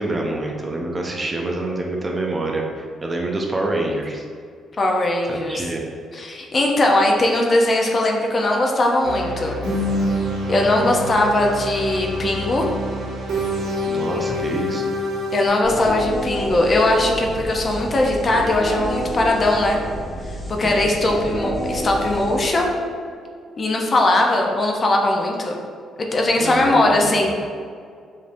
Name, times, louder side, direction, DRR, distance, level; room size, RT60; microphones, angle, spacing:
voice 1, 0.0-4.2 5.3-5.8 13.8-14.8 20.6-20.8 26.4-27.4, right 2 dB, 25° right, 0 dB, 0.5 m, -26 dB
voice 2, 4.8-5.6 6.1-9.6 10.5-12.7 15.3-19.8 20.3-22.7 23.6-25.6 26.0-27.3, left 1 dB, 40° left, 0 dB, 0.6 m, -19 dB
sound 1, 9.0-15.5, left 1 dB, 85° right, 1.0 m, -26 dB
sound 2, 15.6-23.3, equal, 5° left, 1.2 m, -29 dB
5.1 x 2.6 x 2.6 m, 2.2 s
cardioid pair, 90°, 0 cm